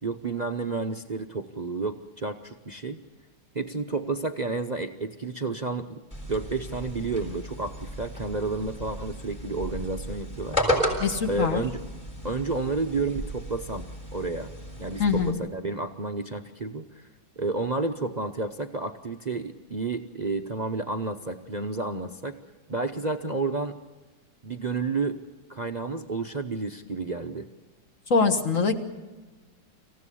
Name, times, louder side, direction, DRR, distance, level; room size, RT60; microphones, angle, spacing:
voice 1, 0.0-3.0 3.5-6.0 6.3-10.6 11.3-11.8 12.2-13.8 14.1-14.5 14.8-17.0 17.4-22.4 22.7-23.7 24.4-25.2 25.5-27.5, right 3 dB, 50° right, 8 dB, 0.5 m, -31 dB
sound 1, 6.1-15.3, equal, 15° left, 6.9 m, -33 dB
voice 2, 11.0-11.6 15.0-15.4 28.1-28.7, left 5 dB, 40° left, 7 dB, 1.8 m, -23 dB
26.5 x 16.0 x 8.4 m, 1.2 s
omnidirectional pair, 2.1 m